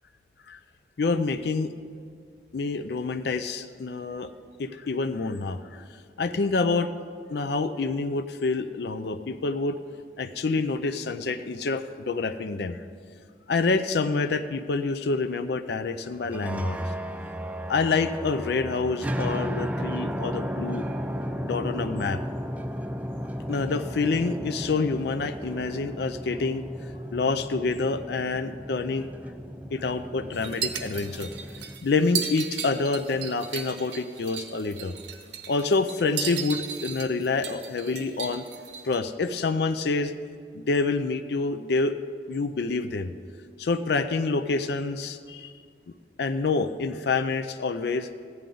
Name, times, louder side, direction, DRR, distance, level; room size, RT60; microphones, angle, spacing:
voice 1, 1.0-1.7 2.5-4.3 4.6-5.8 6.2-6.9 7.3-9.8 10.2-12.8 13.5-16.8 17.7-20.8 21.4-22.2 23.5-26.6 27.1-29.1 29.7-31.3 31.8-34.9 35.5-38.4 38.8-40.1 40.5-41.9 42.3-43.1 43.6-45.5 46.2-48.1, left 3 dB, 65° left, 10 dB, 0.5 m, -27 dB
sound 1, 16.2-31.8, equal, 10° right, 0.3 m, -34 dB
sound 2, 30.3-39.0, right 8 dB, 75° right, 0.9 m, -36 dB
15.0 x 10.5 x 3.9 m, 2.1 s
head